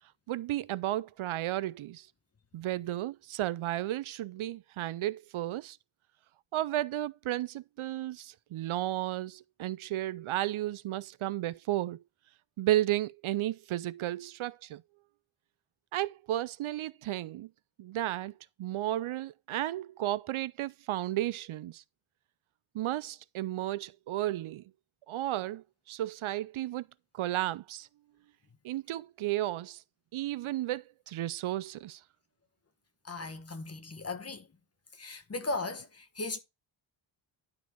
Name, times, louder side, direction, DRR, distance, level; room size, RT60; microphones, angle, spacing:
voice 1, 0.3-2.1 2.5-5.8 6.5-12.0 12.6-14.8 15.9-17.5 17.8-18.3 18.6-21.8 22.7-24.6 25.1-26.8 27.1-27.9 28.6-29.8 30.1-32.0, right 14 dB, 75° right, 0.5 m, -33 dB
voice 2, 33.0-34.5 34.9-36.4, left 3 dB, 30° left, 1.3 m, -37 dB
11.5 x 4.5 x 4.4 m
wide cardioid pair, 140°, 50 cm